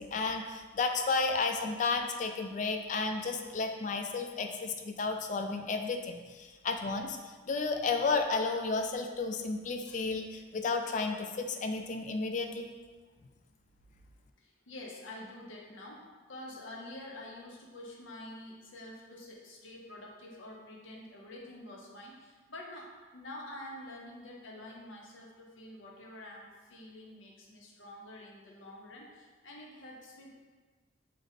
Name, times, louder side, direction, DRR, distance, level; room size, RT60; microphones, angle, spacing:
voice 1, 0.0-7.2 7.5-12.7, left 4 dB, 40° left, 5 dB, 0.3 m, -32 dB
voice 2, 14.4-30.3, left 1 dB, 80° left, -1 dB, 0.8 m, -47 dB
3.9 x 3.3 x 4.0 m, 1.4 s
head